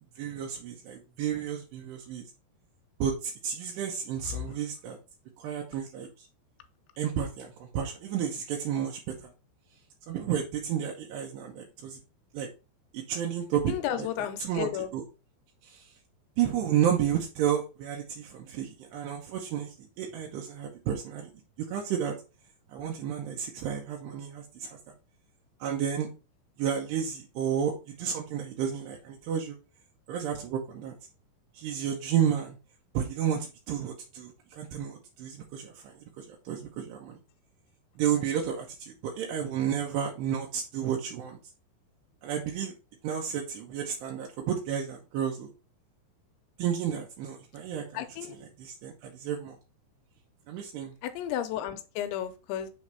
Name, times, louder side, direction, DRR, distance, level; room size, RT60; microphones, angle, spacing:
voice 1, 0.2-2.2 3.0-5.0 5.4-6.1 7.0-9.3 10.1-12.0 12.3-12.5 12.9-15.0 15.7-15.8 16.4-21.3 21.7-22.1 22.7-24.7 25.6-26.1 26.6-29.6 30.1-30.9 31.6-32.6 32.9-35.7 36.2-37.2 38.0-41.4 42.2-42.7 43.0-45.5 46.6-49.6 50.5-50.9, right 9 dB, 80° right, 2.8 m, -31 dB
voice 2, 13.7-14.9 47.9-48.4 51.0-52.7, left 11 dB, 85° left, 3.0 m, -33 dB
7.4 x 3.2 x 4.5 m
omnidirectional pair, 5.3 m